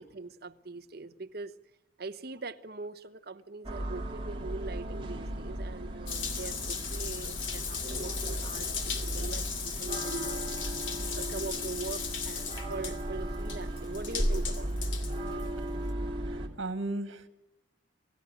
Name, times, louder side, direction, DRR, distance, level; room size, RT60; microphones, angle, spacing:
voice 1, 0.0-1.5 2.0-10.5 11.1-14.9, right 3 dB, 50° right, 1.0 m, -42 dB
sound 1, 3.6-16.5, right 1 dB, 25° right, 2.5 m, -37 dB
Water tap faucet / Bathtub (filling or washing) / Drip, 6.1-15.9, left 4 dB, 80° left, 2.7 m, -36 dB
voice 2, 16.3-17.3, right 2 dB, 90° right, 1.8 m, -35 dB
27.5 x 15.0 x 9.9 m
head